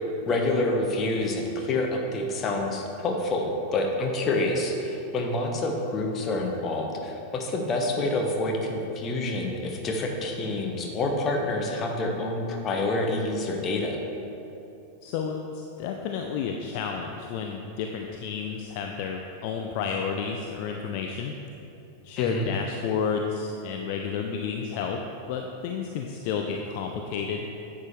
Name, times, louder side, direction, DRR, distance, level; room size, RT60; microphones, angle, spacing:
voice 1, 0.3-14.0 22.2-22.6, left 2 dB, 30° left, 1 dB, 1.1 m, -27 dB
voice 2, 15.0-21.4 22.0-27.7, left 6 dB, 45° left, 3 dB, 0.5 m, -31 dB
10.5 x 7.4 x 3.2 m, 2.9 s
figure-of-eight pair, 90°, 0 cm